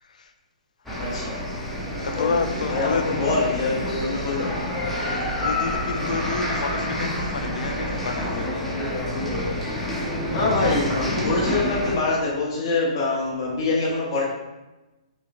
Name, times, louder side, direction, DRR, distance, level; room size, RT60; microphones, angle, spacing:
sound 1, 0.9-12.0, left 1 dB, 5° left, 0.4 m, -28 dB
voice 1, 1.0-1.4 2.1-4.5 10.3-14.2, left 3 dB, 40° left, -5 dB, 0.7 m, -25 dB
voice 2, 2.0-3.0 5.0-8.6, left 5 dB, 75° left, 7 dB, 0.5 m, -30 dB
3.0 x 3.0 x 4.0 m, 1.1 s
hypercardioid pair, 170°, 4 cm